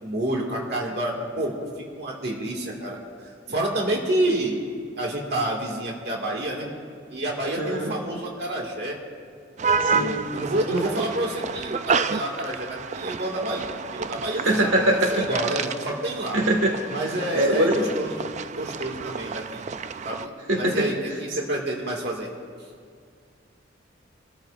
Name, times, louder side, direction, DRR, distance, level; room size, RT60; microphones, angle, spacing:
voice 1, 0.0-3.0 3.5-4.6 5.0-6.7 7.1-9.0 9.6-16.4 16.9-18.2 18.5-19.6 20.0-20.3 20.6-22.3, right 1 dB, 55° right, -2 dB, 2.2 m, -28 dB
voice 2, 7.6-7.9 9.8-10.3 14.4-15.3 16.3-16.8 17.3-17.8 20.5-20.9, right 1 dB, 90° right, 1 dB, 2.0 m, -22 dB
sound 1, 9.6-20.3, right 5 dB, 35° right, 0.3 m, -30 dB
26.0 x 13.5 x 2.6 m, 2.2 s
head